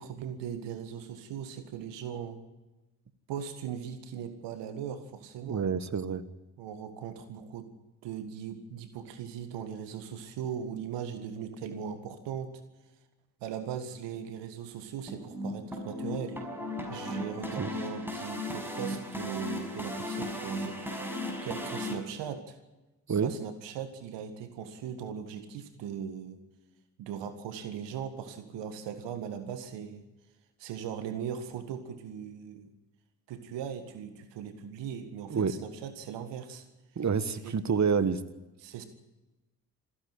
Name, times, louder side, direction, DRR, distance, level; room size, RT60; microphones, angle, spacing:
voice 1, 0.0-2.4 3.3-5.7 6.6-7.7 8.0-12.6 13.4-16.4 16.9-20.8 21.4-22.6 23.2-26.4 27.0-30.0 30.6-32.7 33.3-36.6 37.3-37.6 38.6-38.8, right 8 dB, 70° right, 10 dB, 1.9 m, -39 dB
voice 2, 5.5-6.3 17.6-17.7 23.1-23.3 35.3-35.5 37.0-38.2, right 6 dB, 40° right, 15 dB, 1.6 m, -28 dB
sound 1, 15.1-21.9, left 1 dB, 5° right, 5.7 m, -36 dB
27.0 x 10.5 x 9.8 m, 1.1 s
hypercardioid pair, 40°, 44 cm